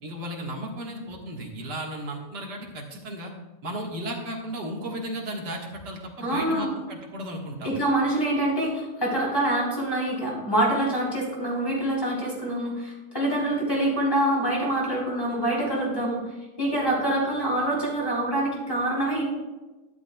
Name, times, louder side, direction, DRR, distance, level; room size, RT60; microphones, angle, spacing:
voice 1, 0.0-3.3 3.6-7.7, right 1 dB, 90° right, -1 dB, 2.2 m, -35 dB
voice 2, 6.2-6.7 7.6-16.2 16.6-19.2, right 1 dB, 15° left, -4 dB, 3.5 m, -25 dB
13.0 x 11.5 x 2.3 m, 1.2 s
omnidirectional pair, 1.8 m